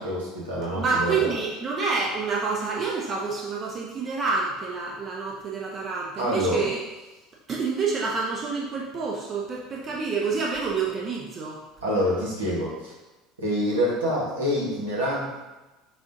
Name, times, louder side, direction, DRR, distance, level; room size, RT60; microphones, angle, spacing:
voice 1, 0.0-1.2 6.2-6.7 11.8-12.9 13.4-15.4, equal, 80° right, -6 dB, 1.3 m, -26 dB
voice 2, 0.7-6.8 7.5-11.6, right 4 dB, 35° right, -3 dB, 0.8 m, -28 dB
6.7 x 2.4 x 2.7 m, 1.1 s
hypercardioid pair, 70°, 0 cm